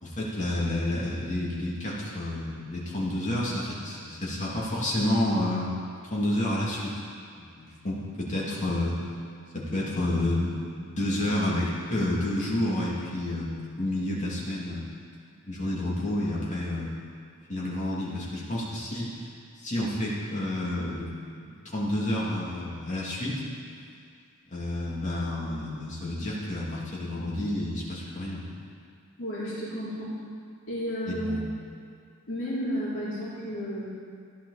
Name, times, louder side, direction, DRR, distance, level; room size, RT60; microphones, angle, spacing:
voice 1, 0.0-5.7 6.0-6.9 7.4-9.0 9.5-10.6 10.9-14.9 15.4-16.9 17.5-19.2 19.6-21.1 21.4-23.4 24.5-28.4 31.1-31.4, left 1 dB, 35° left, -6 dB, 2.7 m, -30 dB
voice 2, 29.2-30.1 30.7-31.3 32.3-33.9, equal, 60° left, -9 dB, 3.2 m, -32 dB
14.5 x 10.0 x 4.2 m, 2.3 s
head